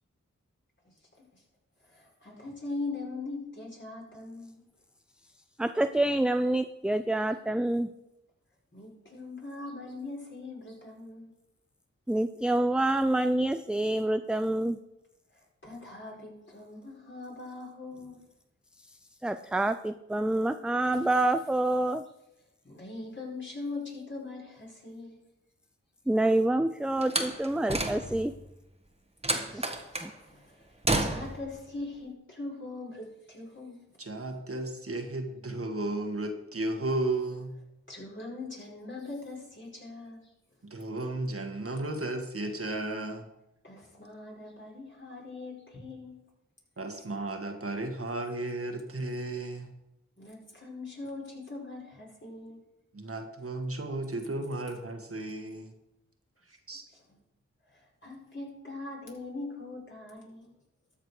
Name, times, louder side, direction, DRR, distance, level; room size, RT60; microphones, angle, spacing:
voice 1, 1.8-4.6 8.7-11.3 15.3-18.2 20.9-21.0 22.6-25.2 29.5-33.8 37.9-40.3 43.6-46.2 50.2-52.6 56.9-57.2 57.7-60.5, left 3 dB, 40° left, -3 dB, 4.8 m, -41 dB
voice 2, 5.6-7.9 12.1-14.8 19.2-22.0 26.1-28.3 29.5-29.6 30.0-30.1, right 1 dB, 5° right, 10 dB, 0.4 m, -27 dB
Slam, 27.0-28.4 29.2-30.1 30.8-31.5, right 1 dB, 20° right, 1.5 m, -30 dB
voice 3, 34.0-37.5 40.6-43.3 46.8-49.7 52.9-55.7 56.5-56.8, right 2 dB, 50° right, 4 dB, 1.7 m, -34 dB
13.0 x 6.7 x 4.8 m, 0.88 s
cardioid pair, 40°, 29 cm